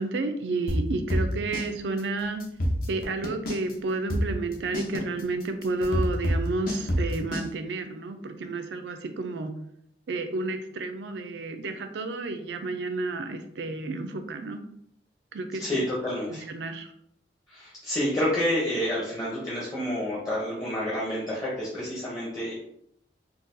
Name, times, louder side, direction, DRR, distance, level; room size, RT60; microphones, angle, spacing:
voice 1, 0.0-2.4 2.9-9.5 10.1-14.6 15.3-15.6 16.3-16.9, right 3 dB, 80° right, 7 dB, 0.4 m, -31 dB
sound 1, 0.7-1.7 2.0-2.1 2.4-3.7 4.1-7.5, equal, 55° left, 0.7 m, -26 dB
voice 2, 15.6-16.5 17.5-22.5, equal, 20° left, -7 dB, 0.7 m, -29 dB
3.9 x 2.3 x 2.6 m, 0.73 s
head